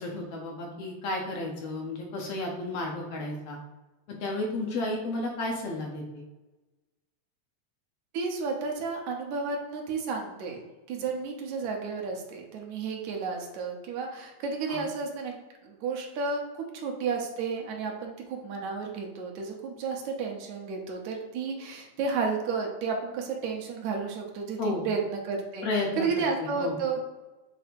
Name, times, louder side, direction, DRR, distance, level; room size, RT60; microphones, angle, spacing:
voice 1, 0.0-3.6 4.2-6.2 14.7-14.8 24.6-24.8 25.6-26.8, left 2 dB, 65° left, 0 dB, 1.7 m, -32 dB
voice 2, 8.1-15.4 15.6-27.1, right 4 dB, 75° right, 1 dB, 2.3 m, -32 dB
7.6 x 2.7 x 5.1 m, 1.1 s
omnidirectional pair, 3.4 m